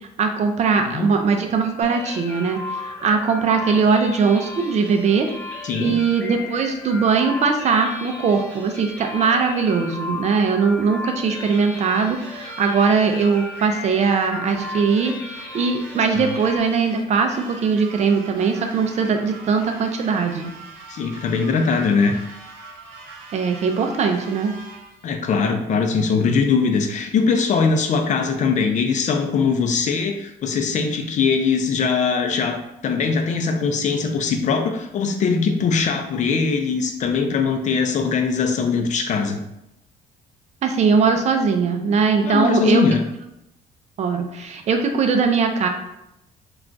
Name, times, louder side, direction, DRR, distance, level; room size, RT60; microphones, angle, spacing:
voice 1, 0.0-5.3 5.8-20.5 23.3-24.5 40.6-42.8 44.0-45.7, right 5 dB, 40° right, 5 dB, 0.4 m, -20 dB
sound 1, 1.8-16.6, left 2 dB, 10° left, 0.8 m, -35 dB
voice 2, 5.6-6.0 16.1-16.3 20.9-22.2 25.0-39.4 42.2-43.0, left 5 dB, 45° left, 5 dB, 0.4 m, -21 dB
sound 2, 11.4-25.0, right 3 dB, 90° right, 0.7 m, -42 dB
2.3 x 2.3 x 3.8 m, 0.86 s
cardioid pair, 110°, 17 cm